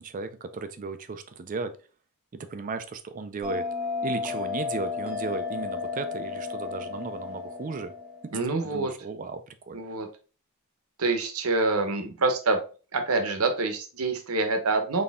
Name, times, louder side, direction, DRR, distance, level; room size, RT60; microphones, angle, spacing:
voice 1, 0.0-1.8 2.4-3.6 4.0-7.9 8.2-8.3 8.6-9.8, right 4 dB, 35° right, 10 dB, 0.4 m, -35 dB
Bell, 3.4-8.5, left 5 dB, 5° right, 1.0 m, -33 dB
voice 2, 8.3-8.9 9.7-10.1 11.0-12.6 12.9-15.0, right 3 dB, 75° right, 6 dB, 0.9 m, -26 dB
4.2 x 3.3 x 3.5 m, 0.37 s
head